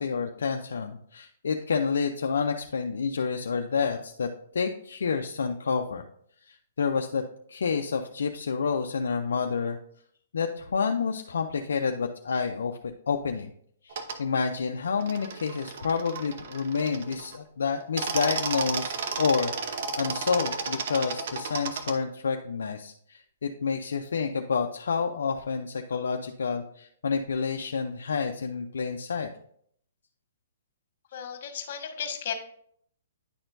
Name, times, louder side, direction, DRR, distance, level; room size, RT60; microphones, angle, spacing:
voice 1, 0.0-6.0 6.5-7.2 7.5-9.8 10.3-12.8 13.1-13.5 13.8-29.3, left 5 dB, 80° left, 4 dB, 0.5 m, -29 dB
sound 1, 13.9-14.2 15.0-17.4 17.8-21.9, right 5 dB, 55° right, 0.8 m, -33 dB
voice 2, 31.1-32.3, left 8 dB, 55° left, 5 dB, 1.3 m, -34 dB
9.8 x 4.3 x 2.6 m, 0.65 s
hypercardioid pair, 140°, 0 cm